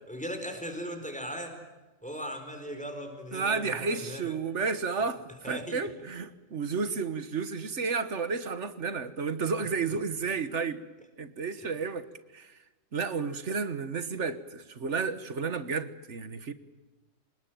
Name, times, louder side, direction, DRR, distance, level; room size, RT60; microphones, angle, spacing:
voice 1, 0.1-1.6 2.0-4.3 5.4-5.9 8.1-8.2 11.6-11.7, equal, 5° left, 4.5 m, -38 dB
voice 2, 3.3-10.8 11.2-12.5 12.9-16.5, right 5 dB, 65° right, 1.7 m, -32 dB
26.0 x 20.5 x 9.2 m
omnidirectional pair, 1.3 m